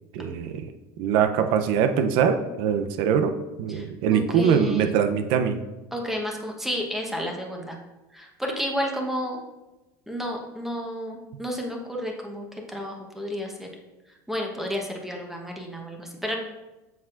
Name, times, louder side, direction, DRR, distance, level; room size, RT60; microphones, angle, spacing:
voice 1, 0.1-0.7 1.0-3.3 3.6-5.6, right 7 dB, 65° right, 8 dB, 0.6 m, -22 dB
voice 2, 3.7-4.9 5.9-7.8 8.1-9.4 10.1-13.7 14.3-16.4, equal, 5° right, 1 dB, 1.0 m, -31 dB
7.2 x 5.7 x 2.5 m, 1.1 s
supercardioid pair, 105°, 9 cm